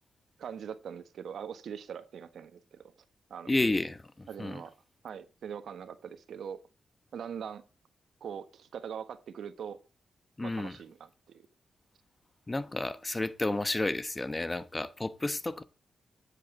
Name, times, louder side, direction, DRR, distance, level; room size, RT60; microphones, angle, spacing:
voice 1, 0.4-2.9 3.3-3.5 4.3-4.7 5.0-6.6 7.1-7.6 8.2-9.8 10.4-11.4, right 7 dB, 75° right, 1.3 m, -42 dB
voice 2, 3.5-4.6 10.4-10.8 12.5-15.6, left 2 dB, 25° left, 1.1 m, -31 dB
9.8 x 8.2 x 3.8 m
cardioid pair, 65°, 0 cm